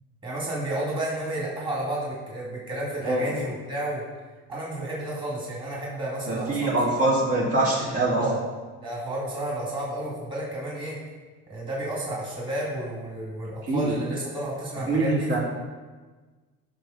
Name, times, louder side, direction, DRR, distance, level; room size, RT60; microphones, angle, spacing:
voice 1, 0.2-4.0 4.5-6.8 8.1-8.4 8.8-11.0 11.5-15.4, right 1 dB, 15° right, -5 dB, 2.4 m, -31 dB
voice 2, 6.3-8.2 13.7-13.9 14.9-15.4, right 2 dB, 50° right, -4 dB, 2.7 m, -24 dB
13.0 x 6.1 x 4.0 m, 1.4 s
cardioid pair, 135°, 31 cm